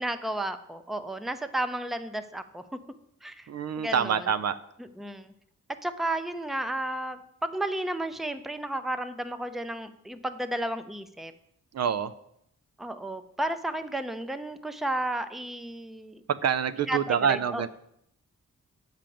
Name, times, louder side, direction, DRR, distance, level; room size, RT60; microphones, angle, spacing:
voice 1, 0.0-2.6 3.2-3.5 3.8-4.3 5.0-5.3 5.8-11.3 12.8-16.2 16.9-17.7, right 1 dB, ahead, 10 dB, 0.5 m, -33 dB
voice 2, 3.5-4.6 11.7-12.1 16.3-17.7, right 7 dB, 55° right, 14 dB, 0.4 m, -26 dB
8.8 x 5.1 x 7.6 m, 0.75 s
wide cardioid pair, 130°, 32 cm